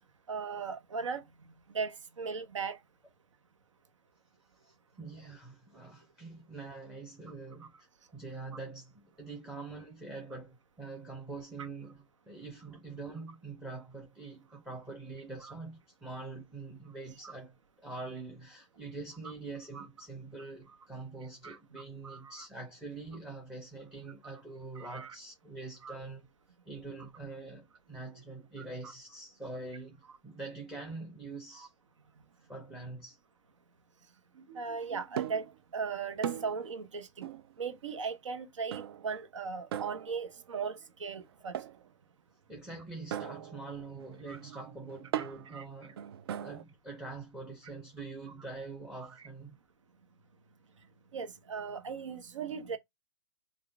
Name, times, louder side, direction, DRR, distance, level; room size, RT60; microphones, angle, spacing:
voice 1, 0.3-1.2 1.7-2.8 15.4-15.5 17.2-17.4 19.7-19.9 21.4-22.5 24.7-25.1 25.8-25.9 31.5-31.7 34.3-35.5 35.7-37.3 37.6-41.6 44.3-44.6 45.5-45.6 51.1-52.8, right 5 dB, 70° right, 1.0 m, -38 dB
voice 2, 4.6-26.3 26.7-31.7 32.5-33.2 42.5-46.0 46.3-49.6, right 3 dB, 5° right, 0.9 m, -44 dB
sound 1, 35.2-35.6 36.2-36.7 37.2-37.5 38.7-39.2 39.7-40.4 41.5-41.9 43.1-46.6, right 10 dB, 50° right, 0.4 m, -39 dB
3.7 x 2.3 x 3.5 m
hypercardioid pair, 135°, 16 cm